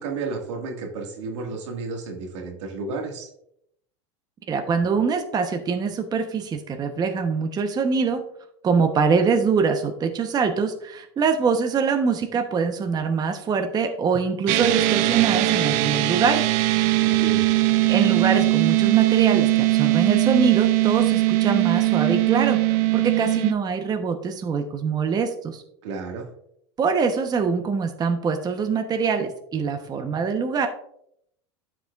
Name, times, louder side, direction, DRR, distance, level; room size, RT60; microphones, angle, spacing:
voice 1, 0.0-3.3 17.0-17.5 25.8-26.3, right 4 dB, 80° right, 2 dB, 1.7 m, -32 dB
voice 2, 4.5-8.2 8.6-16.5 17.9-25.6 26.8-30.7, right 5 dB, 25° right, 6 dB, 0.8 m, -24 dB
sound 1, 14.5-23.5, right 18 dB, 55° right, 0.6 m, -20 dB
13.0 x 4.8 x 2.3 m, 0.73 s
supercardioid pair, 110°, 15 cm